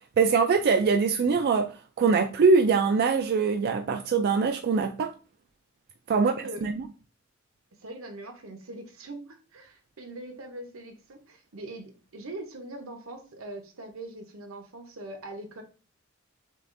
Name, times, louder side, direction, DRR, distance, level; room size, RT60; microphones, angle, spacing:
voice 1, 0.2-5.1 6.1-6.3 6.6-6.7, right 5 dB, 50° right, 0.3 m, -23 dB
voice 2, 6.1-6.7 7.8-15.6, right 1 dB, 80° right, 0.9 m, -42 dB
6.6 x 2.4 x 2.5 m
head